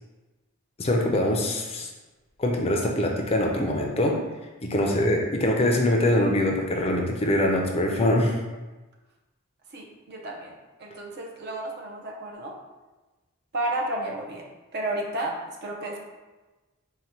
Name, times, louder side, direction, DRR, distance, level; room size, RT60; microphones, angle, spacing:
voice 1, 0.8-1.9 2.4-4.2 4.6-8.4, left 1 dB, 25° left, 1 dB, 0.4 m, -23 dB
voice 2, 9.7-10.5 10.8-12.6 13.5-14.5 14.7-16.0, right 1 dB, 50° right, 0 dB, 0.6 m, -32 dB
4.0 x 2.2 x 4.4 m, 1.2 s
head